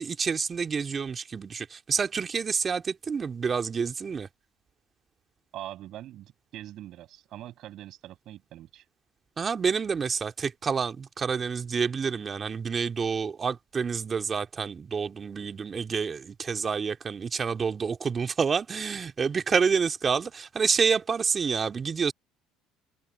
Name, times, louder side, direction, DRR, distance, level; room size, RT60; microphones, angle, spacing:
voice 1, 0.0-4.3 9.4-22.1, right 6 dB, 35° right, 2.7 m, -28 dB
voice 2, 5.5-8.8, right 13 dB, 60° right, 7.9 m, -43 dB
hypercardioid pair, 70°, 0 cm